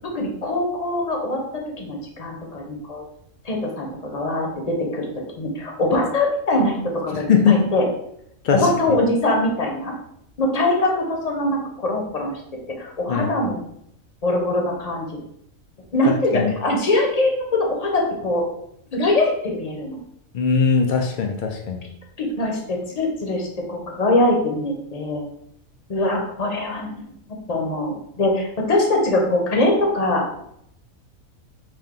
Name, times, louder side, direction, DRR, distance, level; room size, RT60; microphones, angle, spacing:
voice 1, 0.1-1.4 1.8-3.0 3.4-5.1 5.4-7.8 8.5-9.9 10.4-12.3 12.8-13.6 14.2-15.2 15.9-18.4 18.9-20.0 22.2-25.2 25.9-27.1 27.5-30.4, left 2 dB, 35° left, 0 dB, 0.8 m, -22 dB
voice 2, 7.1-7.6 8.4-8.7 13.1-13.3 16.1-16.5 20.3-21.8, left 6 dB, 80° left, 3 dB, 0.4 m, -20 dB
5.1 x 2.7 x 3.6 m, 0.75 s
omnidirectional pair, 1.4 m